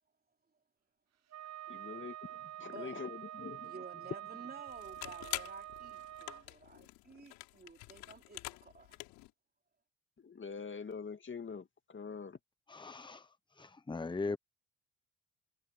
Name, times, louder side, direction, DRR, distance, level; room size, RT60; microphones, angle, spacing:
Wind instrument woodwind instrument, 1.3-6.4, right 13 dB, 50° right, 1.0 m, -47 dB
voice 1, 1.7-3.7 10.2-12.4, left 5 dB, 35° left, 2.6 m, -45 dB
voice 2, 2.6-3.0 3.6-9.0, right 4 dB, 30° right, 3.7 m, -52 dB
sound 1, 4.7-9.3, left 22 dB, 85° left, 5.1 m, -46 dB
voice 3, 12.7-13.2 13.6-14.4, left 3 dB, 15° left, 0.8 m, -38 dB
hypercardioid pair, 60°, 33 cm